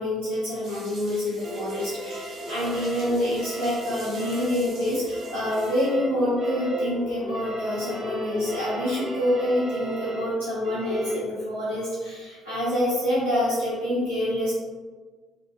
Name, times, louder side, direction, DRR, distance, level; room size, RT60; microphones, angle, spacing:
voice 1, 0.0-14.5, equal, 85° left, -14 dB, 0.6 m, -26 dB
sound 1, 0.6-5.9, right 2 dB, 60° right, 0.7 m, -45 dB
sound 2, 1.4-11.1, equal, 45° right, 1.2 m, -36 dB
2.2 x 2.2 x 3.0 m, 1.4 s
figure-of-eight pair, 45°, 0 cm